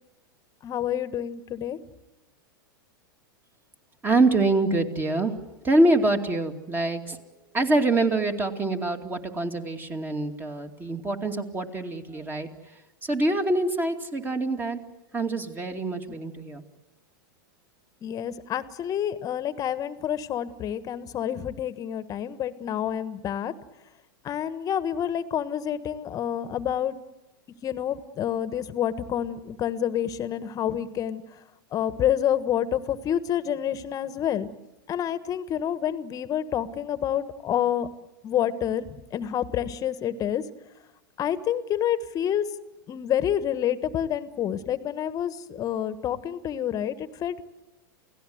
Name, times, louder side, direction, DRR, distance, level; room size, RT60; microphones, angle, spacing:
voice 1, 0.6-1.8 18.0-23.5 24.2-27.0 27.6-31.2 31.7-34.5 34.9-37.9 38.2-40.4 41.2-42.4 42.9-47.4, left 10 dB, 30° left, 13 dB, 1.4 m, -28 dB
voice 2, 4.0-5.4 5.6-7.2 7.5-12.5 13.0-14.8 15.1-16.6, right 2 dB, 15° right, 5 dB, 2.5 m, -25 dB
29.0 x 17.0 x 7.9 m, 1.0 s
hypercardioid pair, 110°, 12 cm